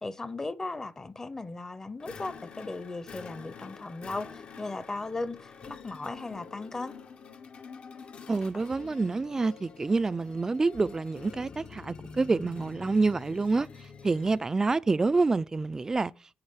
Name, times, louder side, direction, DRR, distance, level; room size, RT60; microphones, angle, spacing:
voice 1, 0.0-6.9, left 3 dB, 25° left, 0.7 m, -37 dB
sound 1, 2.0-14.5, left 5 dB, 60° left, 0.9 m, -47 dB
voice 2, 8.3-13.7 14.0-16.1, right 3 dB, 25° right, 0.4 m, -27 dB
8.8 x 6.0 x 7.4 m
cardioid pair, 110°, 2 cm